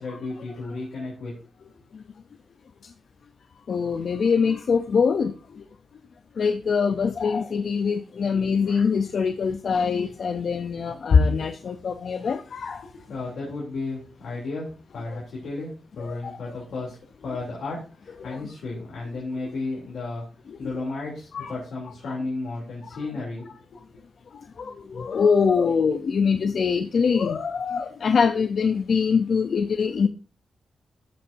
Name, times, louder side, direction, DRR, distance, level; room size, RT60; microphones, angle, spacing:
voice 1, 0.0-1.3 1.7-1.8 12.9-14.7 14.9-20.2 20.6-23.5, left 3 dB, 85° left, 3.1 m, -33 dB
voice 2, 3.7-5.3 6.4-12.9 15.1-15.2 16.0-16.4 18.2-18.4 20.5-20.7 21.3-21.5 24.6-30.1, left 5 dB, 65° left, 0.6 m, -23 dB
13.0 x 6.7 x 2.7 m
cardioid pair, 85°, 0 cm